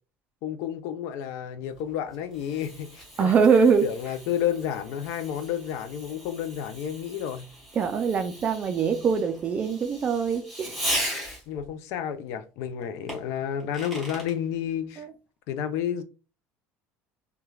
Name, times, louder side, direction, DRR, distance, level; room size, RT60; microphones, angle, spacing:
voice 1, 0.4-3.3 3.8-7.5 11.5-15.0 15.5-16.0, left 9 dB, 60° left, 0.4 m, -31 dB
Fireworks, 1.7-11.7 13.1-14.4, equal, ahead, 1.0 m, -38 dB
voice 2, 3.2-3.8 7.8-10.8 15.0-15.1, right 6 dB, 25° right, 0.3 m, -23 dB
3.1 x 2.2 x 2.3 m
cardioid pair, 165°, 5 cm